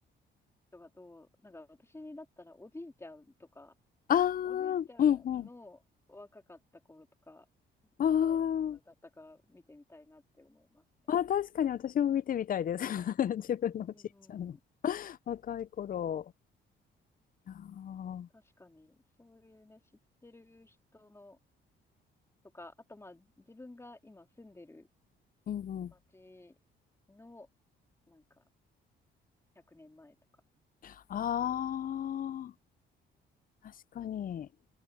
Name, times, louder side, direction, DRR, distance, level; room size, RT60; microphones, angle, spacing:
voice 1, 0.7-3.7 4.4-5.8 6.1-6.6 6.9-7.5 8.2-10.8 13.9-14.6 18.3-19.8 20.2-21.4 22.5-24.9 25.9-26.6 27.1-27.5 28.1-28.4 29.7-30.1, left 2 dB, 15° left, 2.7 m, -53 dB
voice 2, 4.1-5.5 8.0-8.8 11.1-13.9 14.3-14.6 14.8-16.3 17.5-18.3 25.5-25.9 30.8-32.5 33.9-34.5, left 9 dB, 45° left, 0.5 m, -31 dB
cardioid pair, 90°, 20 cm